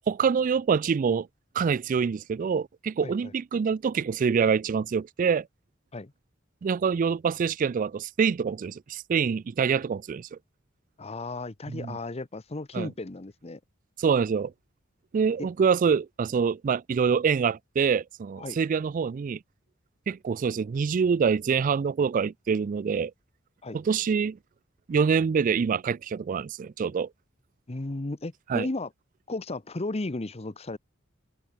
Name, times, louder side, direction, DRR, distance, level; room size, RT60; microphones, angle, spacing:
voice 1, 0.1-1.3 1.5-5.5 6.6-10.4 11.7-12.0 12.7-12.9 14.0-14.5 15.1-19.4 20.1-23.1 23.7-24.4 24.9-27.1 28.5-28.7, right 6 dB, 40° right, 0.3 m, -25 dB
voice 2, 11.0-13.6 15.4-15.5 18.4-18.6 23.6-23.8 27.7-28.9 29.3-30.8, left 2 dB, 30° left, 0.8 m, -34 dB
head